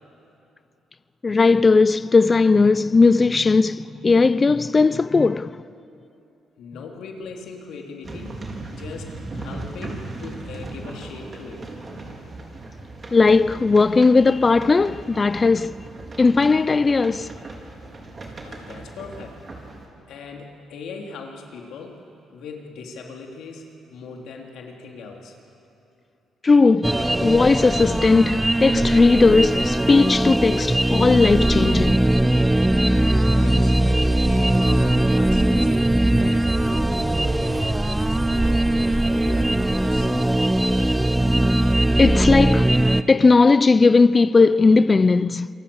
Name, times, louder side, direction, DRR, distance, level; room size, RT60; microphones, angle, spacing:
voice 1, 1.2-5.5 13.1-15.7 16.2-17.3 26.4-32.0 42.0-42.7 43.1-45.5, left 4 dB, 30° left, 0.5 m, -17 dB
voice 2, 6.6-8.4 8.7-11.7 18.4-19.4 20.1-22.0 22.3-25.4 33.3-35.7 36.2-37.8 38.1-38.7 39.1-40.3, left 4 dB, 80° left, 3.3 m, -39 dB
sound 1, 8.0-19.9, right 2 dB, 35° right, 4.0 m, -38 dB
sound 2, 26.8-43.0, right 1 dB, 10° right, 0.8 m, -20 dB
27.0 x 24.0 x 7.2 m
cardioid pair, 90°, 0 cm